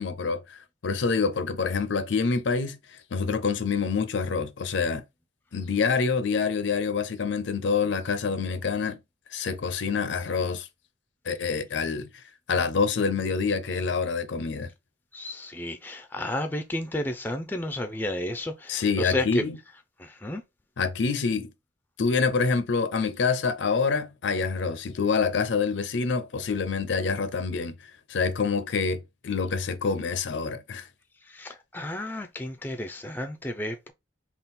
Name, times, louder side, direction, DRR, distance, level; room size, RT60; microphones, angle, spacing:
voice 1, 0.0-5.0 5.5-9.0 9.3-10.7 11.3-12.2 12.5-14.7 18.7-19.6 20.8-21.5 22.0-27.8 28.1-30.9, left 5 dB, 70° left, 0.5 m, -26 dB
voice 2, 15.1-19.4 20.0-20.4 31.3-33.9, left 1 dB, 10° left, 0.4 m, -32 dB
3.6 x 2.4 x 4.1 m
head